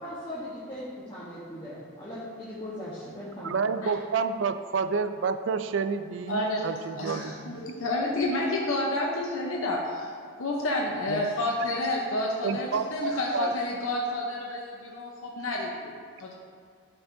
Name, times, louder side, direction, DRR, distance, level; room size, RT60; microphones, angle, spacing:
voice 1, 0.0-3.5, left 1 dB, 20° left, -10 dB, 1.1 m, -39 dB
voice 2, 3.4-7.6 11.1-11.2 12.4-13.5, right 5 dB, 65° right, 10 dB, 0.3 m, -29 dB
voice 3, 6.3-10.1 10.4-16.3, left 1 dB, 85° left, -2 dB, 0.8 m, -30 dB
12.0 x 4.7 x 2.7 m, 2.1 s
head